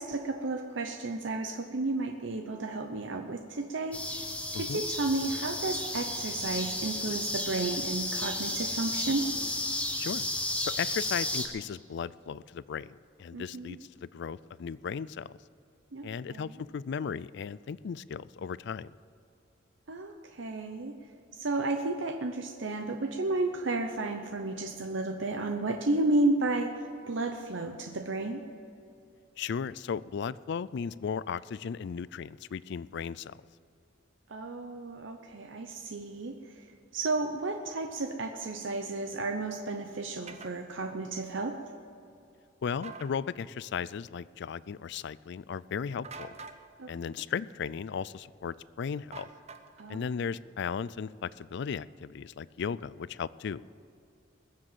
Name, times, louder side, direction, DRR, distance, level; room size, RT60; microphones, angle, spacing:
voice 1, 0.0-4.3 4.5-9.3 13.3-13.8 15.9-16.6 19.9-20.9 21.3-28.4 34.3-41.6 46.8-47.1 49.8-50.1, right 2 dB, 70° right, 5 dB, 0.8 m, -32 dB
sound 1, 3.9-11.5, left 1 dB, 5° left, 1.5 m, -33 dB
voice 2, 10.6-13.8 14.1-15.3 16.0-18.9 29.4-33.3 42.6-46.3 46.9-49.3 49.9-53.6, left 6 dB, 60° left, 19 dB, 0.4 m, -36 dB
sound 2, 40.3-40.5 42.7-43.1 46.0-46.6 49.1-49.9, right 4 dB, 35° right, 0.9 m, -45 dB
21.0 x 7.6 x 7.5 m, 2.7 s
head